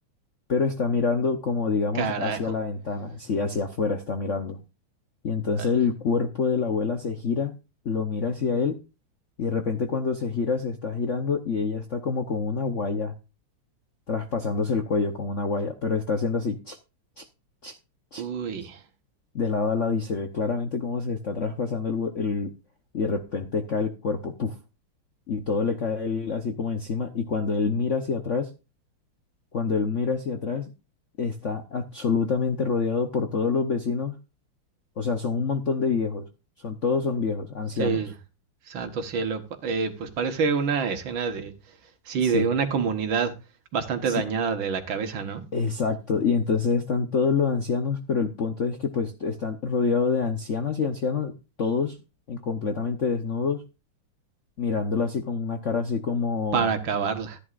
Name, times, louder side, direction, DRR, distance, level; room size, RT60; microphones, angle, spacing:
voice 1, 0.5-4.6 5.2-7.6 7.8-8.8 9.4-13.1 14.1-16.8 17.2-17.3 17.6-17.8 18.1-18.2 19.3-22.5 22.9-24.6 25.3-28.5 29.5-30.7 31.2-34.2 35.0-36.3 36.6-38.0 42.2-42.5 44.0-44.2 45.5-51.3 51.6-52.0 52.3-53.6 54.6-56.8, left 5 dB, 50° left, 0.9 m, -26 dB
voice 2, 2.0-2.4 5.6-5.7 18.2-18.8 37.8-38.1 38.7-41.5 42.1-43.3 43.7-45.4 56.5-57.4, right 5 dB, 65° right, 2.1 m, -27 dB
14.0 x 9.9 x 2.5 m
omnidirectional pair, 2.4 m